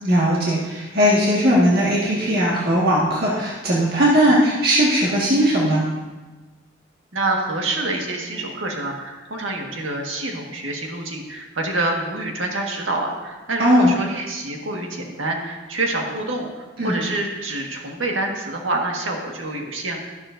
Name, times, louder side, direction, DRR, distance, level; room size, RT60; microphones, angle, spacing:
voice 1, 0.0-5.8 13.6-13.9 16.8-16.9, equal, 50° right, -5 dB, 1.7 m, -18 dB
voice 2, 7.1-20.0, right 2 dB, 85° right, 1 dB, 1.7 m, -27 dB
13.0 x 11.5 x 2.6 m, 1.2 s
head